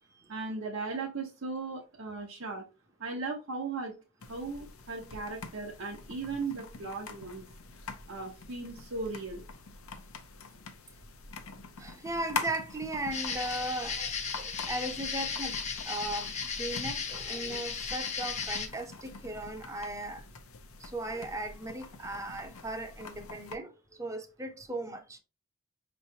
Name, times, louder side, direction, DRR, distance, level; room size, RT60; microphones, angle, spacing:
voice 1, 0.3-2.6 3.0-3.9 4.3-7.4 8.1-9.4 13.6-13.7, right 3 dB, 70° right, 0.9 m, -37 dB
sound 1, 4.2-23.6, left 4 dB, 80° left, 0.7 m, -45 dB
voice 2, 11.8-14.0 14.4-20.2 20.8-23.7 24.0-25.2, right 1 dB, 15° right, 0.6 m, -37 dB
sound 2, 13.1-18.7, left 5 dB, 35° left, 0.7 m, -35 dB
5.4 x 3.1 x 2.8 m
head